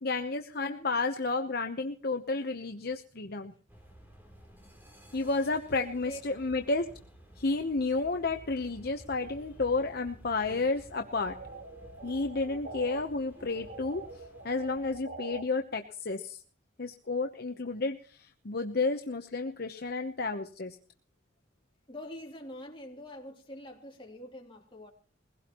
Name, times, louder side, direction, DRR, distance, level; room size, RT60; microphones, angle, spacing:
voice 1, 0.0-3.5 5.1-6.9 7.4-11.3 12.0-14.0 14.4-16.4 16.8-20.8, left 3 dB, 50° left, 0.9 m, -31 dB
voice 2, 0.6-0.9 5.7-6.2 21.9-24.9, equal, 25° left, 2.8 m, -44 dB
sound 1, 3.7-15.0, right 1 dB, 10° right, 3.3 m, -53 dB
sound 2, 10.9-13.0 13.4-15.4, right 3 dB, 60° right, 1.4 m, -45 dB
21.5 x 16.5 x 3.0 m
head